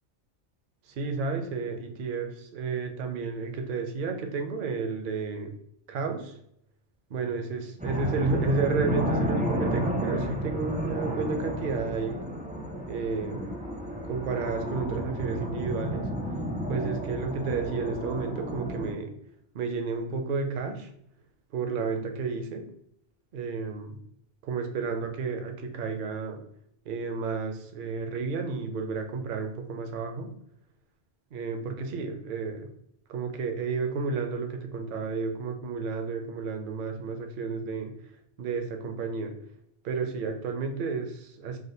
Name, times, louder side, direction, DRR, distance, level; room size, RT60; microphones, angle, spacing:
voice 1, 0.9-5.5 5.9-6.4 7.1-12.2 12.9-13.4 14.1-16.1 16.7-19.1 19.5-20.9 21.5-22.6 23.3-23.9 24.4-26.4 26.9-30.3 31.3-32.7 33.1-37.9 38.4-39.3 39.8-41.6, right 4 dB, 60° right, 5 dB, 0.6 m, -31 dB
sound 1, 7.8-18.9, equal, 10° right, 0.4 m, -32 dB
3.5 x 2.2 x 2.6 m, 0.73 s
omnidirectional pair, 1.2 m